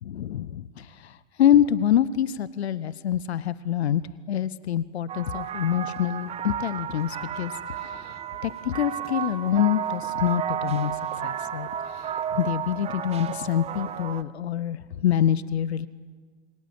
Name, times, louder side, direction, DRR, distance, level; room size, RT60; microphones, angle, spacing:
voice 1, 0.0-4.0 4.3-8.1 8.4-11.0 11.2-15.9, left 10 dB, 60° left, 17 dB, 1.1 m, -26 dB
sound 1, 5.1-14.2, right 9 dB, 15° right, 1.0 m, -32 dB
27.5 x 23.5 x 8.9 m, 1.6 s
figure-of-eight pair, 110°, 36 cm